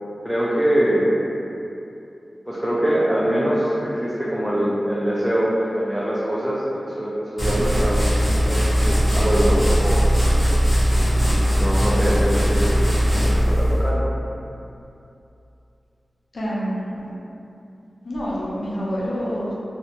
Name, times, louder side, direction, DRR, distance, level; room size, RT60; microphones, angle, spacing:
voice 1, 0.2-1.2 2.5-5.5 5.7-8.2 8.4-10.0 10.3-10.5 11.5-13.0 13.3-14.0, right 1 dB, 5° right, -7 dB, 0.3 m, -23 dB
sound 1, 7.4-13.9, equal, 20° left, 0.7 m, -19 dB
voice 2, 16.3-17.0 18.0-19.5, equal, 65° left, -7 dB, 0.6 m, -27 dB
2.5 x 2.1 x 2.8 m, 2.7 s
wide cardioid pair, 95°, 0 cm